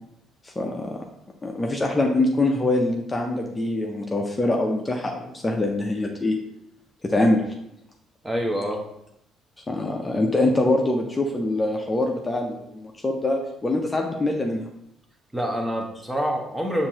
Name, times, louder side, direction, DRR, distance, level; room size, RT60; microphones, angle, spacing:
voice 1, 0.4-0.9 1.4-6.4 7.0-7.4 9.7-14.7, left 2 dB, 25° left, 1 dB, 0.6 m, -24 dB
voice 2, 8.2-8.8 15.3-16.9, equal, 10° right, 2 dB, 0.9 m, -26 dB
7.0 x 2.6 x 2.8 m, 0.79 s
figure-of-eight pair, 45°, 0 cm